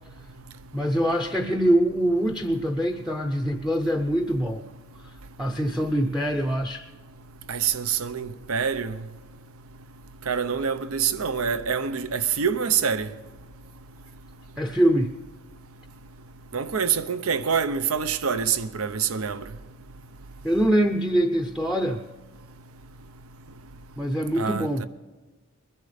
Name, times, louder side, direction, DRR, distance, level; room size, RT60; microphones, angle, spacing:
voice 1, 0.7-4.6 5.4-6.8 14.6-15.1 20.4-22.0 24.0-24.9, right 1 dB, ahead, 0.5 m, -24 dB
voice 2, 7.5-9.0 10.3-13.1 16.5-19.4 24.4-24.7, right 7 dB, 85° right, 0.7 m, -26 dB
21.5 x 10.5 x 5.0 m
head